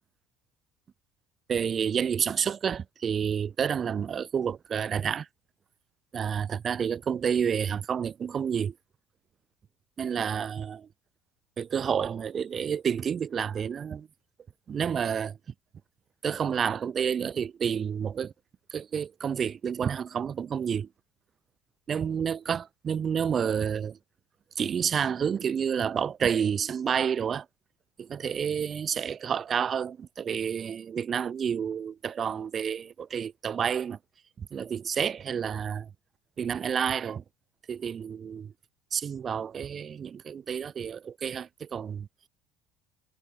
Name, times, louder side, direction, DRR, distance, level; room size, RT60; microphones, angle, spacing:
voice 1, 1.5-5.3 6.1-8.7 10.0-10.9 11.6-14.1 14.7-15.4 16.2-18.3 18.7-20.9 21.9-24.0 24.6-27.5 28.0-34.0 34.4-35.9 36.4-37.2 37.7-38.5 38.9-42.1, right 7 dB, 35° right, 3.0 m, -29 dB
figure-of-eight pair, 60°, 0 cm